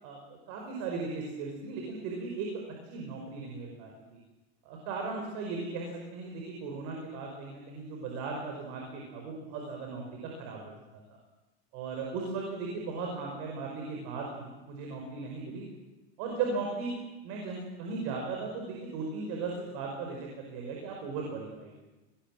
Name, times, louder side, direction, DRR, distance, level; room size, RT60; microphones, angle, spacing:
voice 1, 0.0-2.5 2.9-4.2 4.7-10.7 11.7-15.7 16.2-17.0 17.2-21.7, right 4 dB, 55° right, 1 dB, 5.4 m, -37 dB
24.0 x 20.0 x 7.5 m, 1.1 s
supercardioid pair, 145°, 33 cm